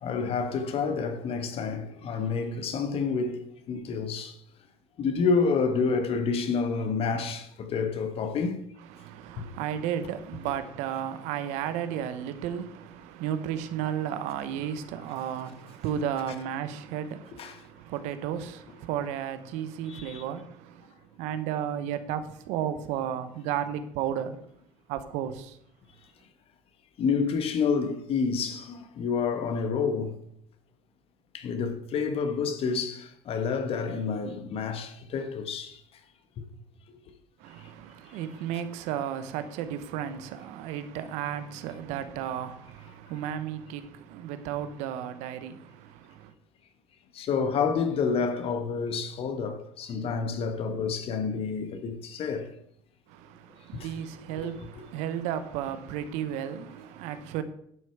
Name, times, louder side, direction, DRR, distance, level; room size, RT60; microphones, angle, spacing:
voice 1, 0.0-4.4 5.0-8.7 9.4-9.5 17.4-17.6 19.8-20.2 27.0-30.2 31.3-35.8 36.4-36.5 47.1-52.5 53.7-53.9 54.3-54.5, left 5 dB, 55° left, 1.4 m, -29 dB
voice 2, 8.9-24.5 24.9-25.6 37.4-46.3 53.1-57.4, right 9 dB, 75° right, 0.9 m, -33 dB
11.0 x 6.2 x 4.6 m
supercardioid pair, 85°, 12 cm